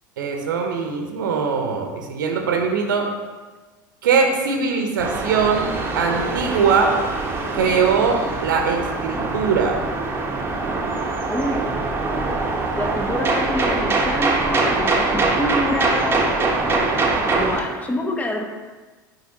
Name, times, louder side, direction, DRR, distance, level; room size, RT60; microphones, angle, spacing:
voice 1, 0.2-3.1 4.0-5.7 5.9-6.9 7.5-9.8, right 5 dB, 70° right, 2 dB, 0.9 m, -21 dB
sound 1, 5.0-17.6, right 3 dB, 20° right, 1.2 m, -23 dB
voice 2, 11.3-11.7 12.8-16.3 17.1-18.5, left 1 dB, 15° left, 3 dB, 1.1 m, -27 dB
9.3 x 4.6 x 3.0 m, 1.3 s
figure-of-eight pair, 75°, 11 cm